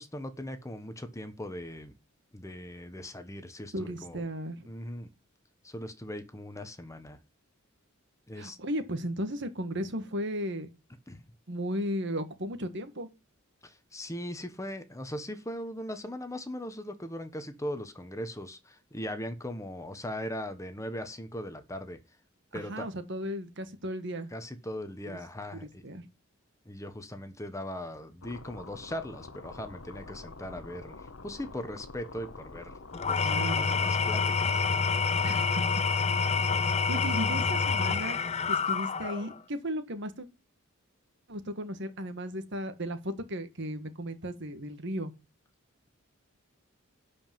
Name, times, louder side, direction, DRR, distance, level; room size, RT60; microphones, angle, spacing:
voice 1, 0.0-1.9 2.3-4.2 4.7-5.1 5.6-7.2 8.3-8.6 11.1-11.2 13.6-22.0 22.5-22.9 24.3-25.8 26.6-32.8 33.1-34.6, left 1 dB, 15° left, 1.1 m, -39 dB
voice 2, 3.7-4.7 8.3-10.7 11.5-13.1 22.5-24.3 25.0-25.2 25.6-26.1 33.2-33.8 35.2-35.6 36.6-38.2 38.5-40.3 41.3-45.1, equal, 60° right, 1.6 m, -35 dB
sound 1, 28.2-33.3, left 3 dB, 65° left, 1.0 m, -46 dB
Engine / Tools, 32.9-39.4, left 5 dB, 30° left, 0.7 m, -27 dB
11.5 x 5.2 x 7.5 m
head